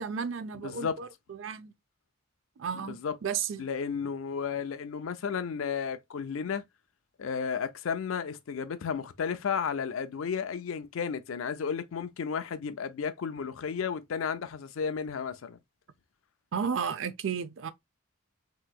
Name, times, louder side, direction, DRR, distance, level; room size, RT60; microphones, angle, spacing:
voice 1, 0.0-1.7 2.6-3.6 16.5-17.7, right 6 dB, 70° right, 0.4 m, -33 dB
voice 2, 0.6-1.0 2.7-3.1 3.6-6.6 7.2-15.6, left 6 dB, 90° left, 0.5 m, -33 dB
3.4 x 2.9 x 2.2 m
head